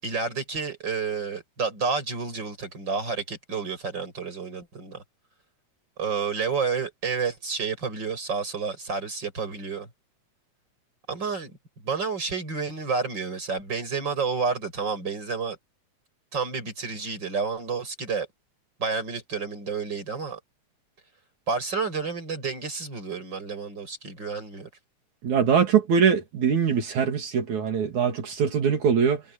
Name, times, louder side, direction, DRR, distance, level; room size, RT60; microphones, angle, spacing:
voice 1, 0.0-5.0 6.0-9.9 11.1-15.6 16.3-18.3 18.8-20.4 21.5-24.7, right 5 dB, 35° right, 7.0 m, -30 dB
voice 2, 25.2-29.2, right 7 dB, 75° right, 4.0 m, -22 dB
omnidirectional pair, 3.4 m